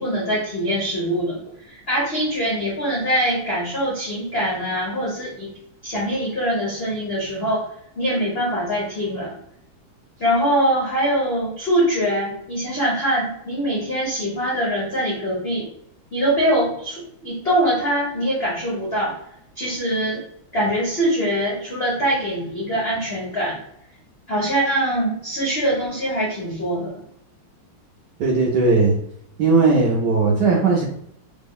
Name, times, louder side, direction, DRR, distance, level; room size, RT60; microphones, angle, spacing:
voice 1, 0.0-5.5 5.8-7.7 8.0-9.3 10.2-15.7 16.1-19.1 19.6-20.2 20.5-23.6 24.3-27.0, equal, 80° left, -5 dB, 0.5 m, -23 dB
voice 2, 28.2-29.0 29.4-30.8, right 3 dB, 75° right, -2 dB, 1.0 m, -17 dB
3.6 x 2.0 x 3.6 m, 0.72 s
omnidirectional pair, 2.4 m